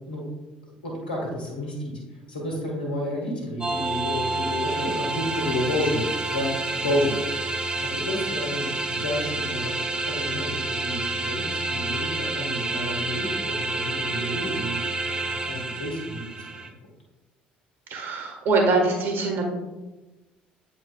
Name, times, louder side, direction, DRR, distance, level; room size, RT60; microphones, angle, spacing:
voice 1, 0.7-1.9 2.3-6.0 6.3-9.7 10.0-10.5 10.8-14.8 15.1-15.2 15.5-16.7, left 1 dB, 80° left, -2 dB, 1.7 m, -30 dB
sound 1, 3.6-16.7, right 2 dB, 20° right, 1.0 m, -29 dB
voice 2, 17.9-19.5, right 3 dB, 50° right, 1 dB, 1.5 m, -23 dB
9.1 x 4.7 x 2.3 m, 1.1 s
figure-of-eight pair, 55°, 5 cm